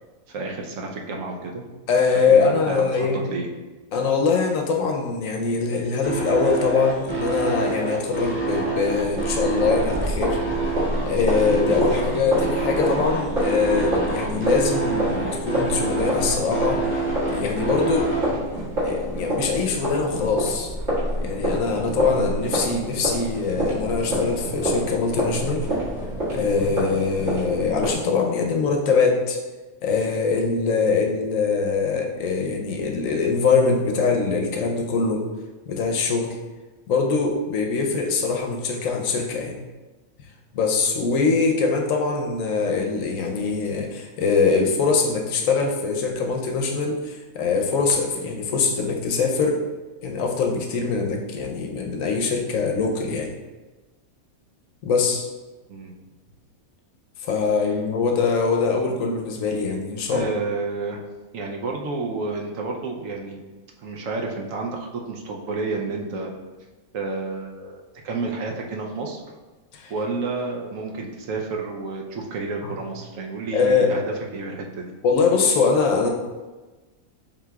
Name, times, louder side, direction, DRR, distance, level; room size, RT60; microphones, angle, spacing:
voice 1, 0.3-1.7 2.3-3.5 55.7-55.9 57.6-57.7 60.1-61.0 61.3-63.4 63.8-66.3 66.9-69.2 69.9-74.0 74.3-74.9, right 3 dB, 75° right, 1 dB, 1.0 m, -30 dB
voice 2, 1.9-3.3 3.9-10.7 11.0-16.8 17.3-18.1 18.8-20.7 21.2-25.7 26.3-29.4 29.8-35.3 35.7-36.4 36.9-39.6 40.5-49.6 50.0-53.3 54.8-55.3 57.2-60.3 69.7-69.9 72.6-72.7 73.5-73.9 75.0-76.1, left 4 dB, 75° left, 1 dB, 1.0 m, -23 dB
sound 1, 6.0-18.3, right 3 dB, 10° right, 1.1 m, -27 dB
sound 2, 8.4-28.0, equal, 55° right, 2.0 m, -28 dB
7.0 x 2.9 x 2.3 m, 1.2 s
omnidirectional pair, 1.5 m